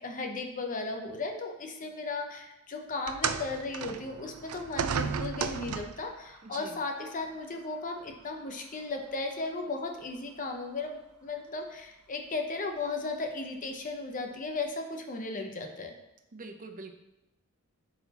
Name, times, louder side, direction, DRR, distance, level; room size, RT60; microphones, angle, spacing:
voice 1, 0.0-15.9, left 3 dB, 40° left, 3 dB, 0.7 m, -36 dB
sound 1, 3.1-6.1 7.1-7.3 8.1-8.2, right 6 dB, 90° right, 0.4 m, -33 dB
voice 2, 6.4-6.8 16.3-16.9, right 3 dB, 40° right, 5 dB, 0.6 m, -44 dB
9.4 x 4.2 x 2.9 m, 0.95 s
head